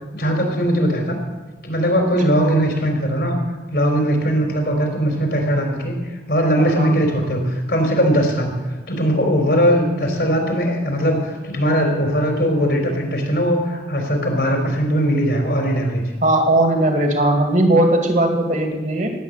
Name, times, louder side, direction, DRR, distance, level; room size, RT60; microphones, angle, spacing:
voice 1, 0.1-1.2 1.6-3.4 3.7-6.0 6.3-8.6 8.9-16.0, equal, 65° left, 2 dB, 3.9 m, -19 dB
voice 2, 6.6-7.0 16.2-19.1, right 1 dB, 45° right, 3 dB, 2.2 m, -18 dB
19.0 x 8.8 x 6.6 m, 1.3 s
head